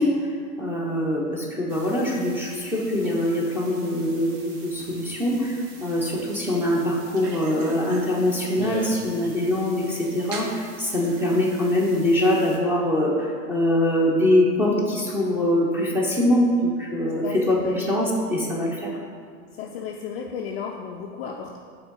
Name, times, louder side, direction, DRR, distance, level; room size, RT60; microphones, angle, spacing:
voice 1, 0.0-18.9, left 1 dB, 5° right, -3 dB, 0.9 m, -23 dB
sound 1, 1.7-12.6, right 3 dB, 45° right, 1.1 m, -41 dB
voice 2, 17.2-17.8 19.5-21.6, left 6 dB, 40° left, 2 dB, 0.4 m, -34 dB
5.8 x 3.8 x 5.4 m, 2.2 s
hypercardioid pair, 125°, 48 cm